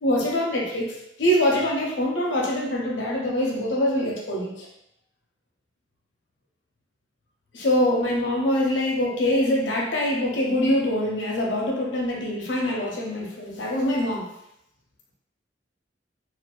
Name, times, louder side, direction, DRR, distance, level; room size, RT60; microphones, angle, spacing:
voice 1, 0.0-4.7 7.5-14.3, left 1 dB, 80° left, -2 dB, 0.6 m, -24 dB
2.5 x 2.4 x 2.3 m, 0.79 s
head